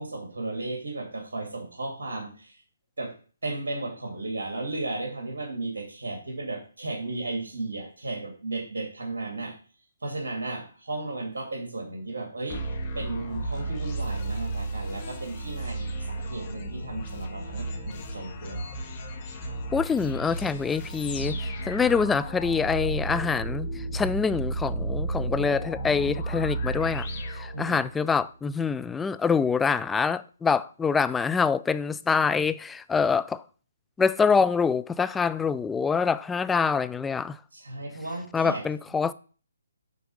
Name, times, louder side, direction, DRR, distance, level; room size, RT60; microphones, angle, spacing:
voice 1, 0.0-2.6 3.0-3.1 3.4-9.6 10.0-18.6 27.5-27.8 37.5-38.6, right 2 dB, 70° right, 2.9 m, -34 dB
sound 1, 12.5-28.1, right 2 dB, 35° left, 1.7 m, -33 dB
voice 2, 19.7-21.4 21.7-27.1 27.3-33.4 34.0-37.4 38.3-39.1, left 5 dB, 10° left, 0.4 m, -25 dB
9.3 x 4.1 x 6.5 m
figure-of-eight pair, 145°, 0 cm